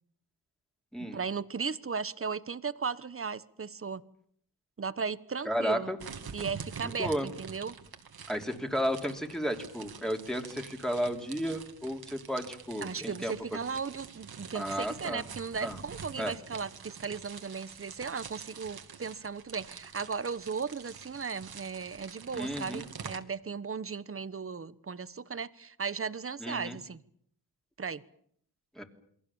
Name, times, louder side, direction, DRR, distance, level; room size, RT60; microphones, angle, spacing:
voice 1, 1.0-4.0 4.8-5.9 6.3-7.8 12.8-27.0 27.8-28.0, right 5 dB, 30° right, 15 dB, 1.2 m, -36 dB
voice 2, 5.4-6.0 6.8-7.3 8.3-13.6 14.5-15.2 15.6-15.8 16.2-16.3 22.3-22.8 26.4-26.8 28.7-28.8, equal, ahead, 3 dB, 3.2 m, -33 dB
sound 1, 6.0-23.2, right 6 dB, 60° right, 2.5 m, -46 dB
28.5 x 22.5 x 7.3 m, 0.66 s
wide cardioid pair, 105°, 41 cm